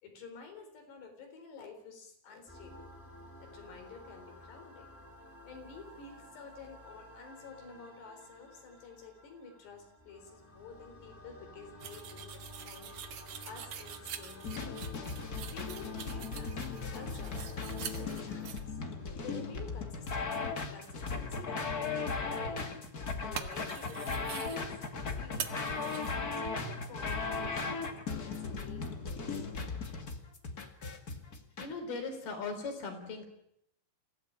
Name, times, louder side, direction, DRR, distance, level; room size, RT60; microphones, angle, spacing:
voice 1, 0.0-2.9 3.4-4.9 5.4-14.8 15.4-16.6 16.9-18.8 19.2-22.9 23.2-26.1 26.5-29.5, left 4 dB, 90° left, 4 dB, 6.3 m, -51 dB
sound 1, 2.5-19.9, left 1 dB, 5° left, 3.5 m, -53 dB
sound 2, 11.8-18.6 23.4-24.6 25.4-26.2, right 8 dB, 55° right, 2.2 m, -45 dB
sound 3, 14.4-31.7, left 4 dB, 35° left, 1.6 m, -37 dB
voice 2, 31.6-33.3, left 4 dB, 70° left, 6 dB, 5.9 m, -38 dB
27.5 x 16.0 x 8.8 m, 0.76 s
omnidirectional pair, 4.7 m